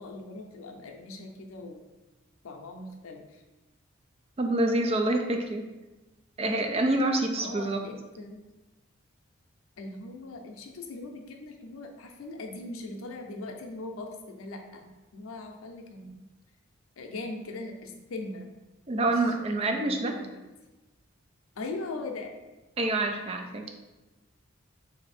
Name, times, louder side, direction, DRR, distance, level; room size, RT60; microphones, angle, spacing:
voice 1, 0.0-1.8 2.4-3.4 7.4-8.4 9.8-14.9 15.1-16.2 17.0-18.5 19.4-20.4 21.6-22.3, left 2 dB, 90° left, 3 dB, 0.5 m, -40 dB
voice 2, 4.4-5.7 6.4-7.8 18.9-20.2 22.8-23.7, right 2 dB, 30° right, 4 dB, 0.3 m, -27 dB
3.3 x 2.7 x 4.1 m, 1.1 s
head